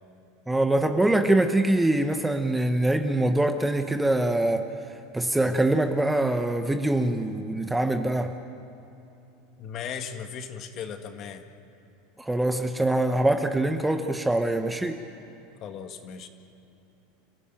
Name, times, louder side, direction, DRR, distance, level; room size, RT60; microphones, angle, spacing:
voice 1, 0.5-4.7 5.1-8.3 12.2-15.0, right 1 dB, 5° right, 7 dB, 1.0 m, -24 dB
voice 2, 9.6-11.4 15.6-16.3, left 7 dB, 40° left, 6 dB, 2.0 m, -37 dB
29.0 x 15.0 x 9.1 m, 2.9 s
supercardioid pair, 130°, 0 cm